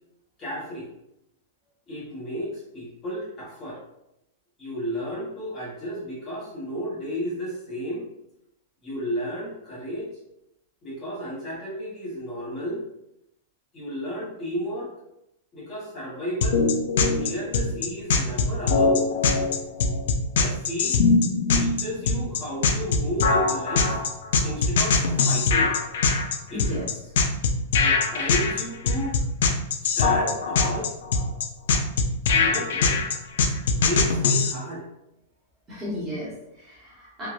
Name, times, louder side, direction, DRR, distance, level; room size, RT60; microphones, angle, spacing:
voice 1, 0.4-0.9 1.9-3.8 4.6-8.0 8.8-10.1 10.8-12.8 13.7-14.9 15.5-16.7 17.1-19.1 20.3-21.0 21.5-24.0 24.4-25.7 26.5-26.6 27.8-29.2 29.8-30.9 32.3-33.0 33.7-34.8, equal, 15° left, -8 dB, 0.8 m, -33 dB
sound 1, 16.4-34.5, left 4 dB, 65° left, 0.3 m, -22 dB
voice 2, 26.5-27.0 35.7-37.3, left 1 dB, 15° right, -8 dB, 0.9 m, -34 dB
3.1 x 2.2 x 2.3 m, 0.84 s
supercardioid pair, 175°, 0 cm